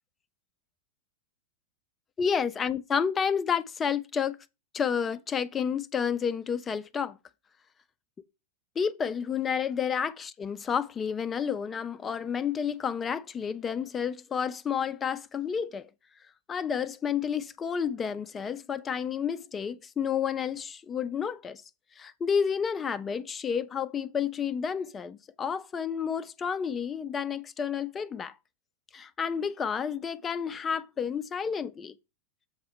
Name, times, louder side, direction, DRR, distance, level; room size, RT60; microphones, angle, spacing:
voice 1, 2.2-4.4 4.7-7.2 8.8-15.9 16.5-21.6 22.0-28.3 28.9-31.9, left 7 dB, 20° left, 0.5 m, -30 dB
7.2 x 3.4 x 5.4 m
figure-of-eight pair, 90°, 0 cm